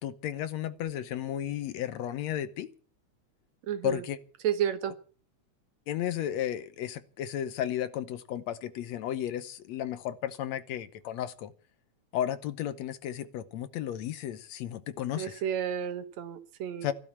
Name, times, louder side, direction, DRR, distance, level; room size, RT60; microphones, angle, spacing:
voice 1, 0.0-2.7 3.8-4.2 5.9-11.5 12.1-15.4 16.8-16.9, left 11 dB, 70° left, 14 dB, 2.0 m, -33 dB
voice 2, 3.7-4.0 4.4-4.9 15.2-16.9, right 9 dB, 70° right, 11 dB, 2.3 m, -31 dB
16.0 x 12.0 x 7.2 m, 0.43 s
omnidirectional pair, 3.4 m